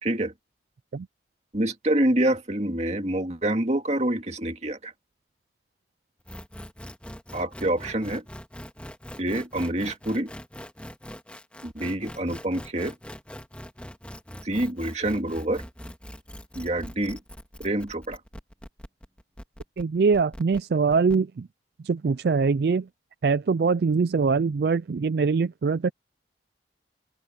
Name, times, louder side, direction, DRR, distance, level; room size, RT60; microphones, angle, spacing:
voice 1, 0.0-0.3 1.5-4.9 7.3-8.2 9.2-10.3 11.6-12.9 14.4-15.6 16.6-17.2 17.6-18.2, right 1 dB, 40° right, 2.3 m, -26 dB
sound 1, 6.3-21.1, equal, 5° left, 1.9 m, -42 dB
voice 2, 19.8-21.5 21.8-22.9 23.2-25.9, right 5 dB, 65° right, 0.4 m, -23 dB
head